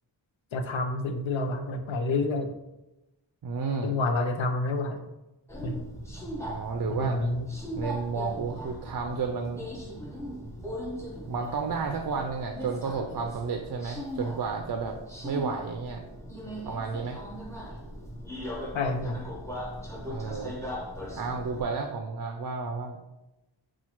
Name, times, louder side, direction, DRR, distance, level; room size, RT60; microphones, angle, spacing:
voice 1, 0.5-2.5 3.8-5.1 5.6-5.8 6.8-7.5 18.7-19.3, left 2 dB, 80° left, 5 dB, 0.6 m, -29 dB
voice 2, 3.4-3.9 6.5-7.2 7.8-9.6 11.3-14.9 15.2-16.0 16.7-17.2 20.1-20.6 21.2-23.0, right 5 dB, 50° right, 3 dB, 0.4 m, -32 dB
Subway metro underground, 5.5-21.6, equal, 5° left, 0.7 m, -39 dB
5.7 x 2.4 x 2.9 m, 0.98 s
wide cardioid pair, 75°, 46 cm